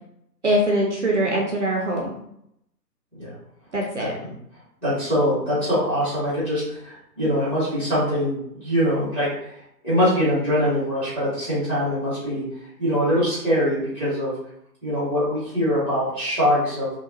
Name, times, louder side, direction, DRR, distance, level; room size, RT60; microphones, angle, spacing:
voice 1, 0.4-2.2 3.7-4.1, right 1 dB, 45° right, -1 dB, 0.4 m, -22 dB
voice 2, 4.0-4.3 4.8-9.5 9.8-12.4 12.8-14.3 14.8-16.9, equal, 5° left, -11 dB, 0.7 m, -23 dB
2.8 x 2.2 x 2.5 m, 0.74 s
figure-of-eight pair, 135°, 50 cm